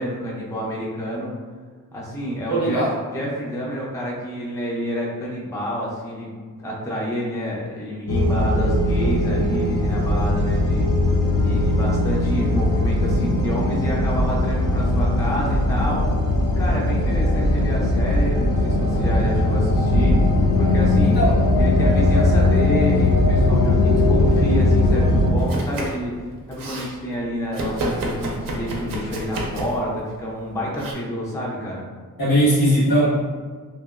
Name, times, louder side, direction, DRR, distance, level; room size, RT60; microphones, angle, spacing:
voice 1, 0.0-1.3 1.9-6.3 6.6-10.9 11.3-16.0 16.6-20.2 20.6-21.2 21.6-26.1 26.5-31.8, equal, 10° left, -4 dB, 0.4 m, -28 dB
voice 2, 2.5-2.9 21.0-21.4 32.2-33.1, equal, 85° left, -7 dB, 1.3 m, -19 dB
sound 1, 8.1-25.3, left 1 dB, 65° left, 0.6 m, -19 dB
Domestic sounds home sounds, 25.4-26.1 26.3-26.9 27.5-29.8 30.7-30.9, right 1 dB, 70° right, 0.6 m, -29 dB
2.9 x 2.7 x 2.3 m, 1.5 s
wide cardioid pair, 170°, 35 cm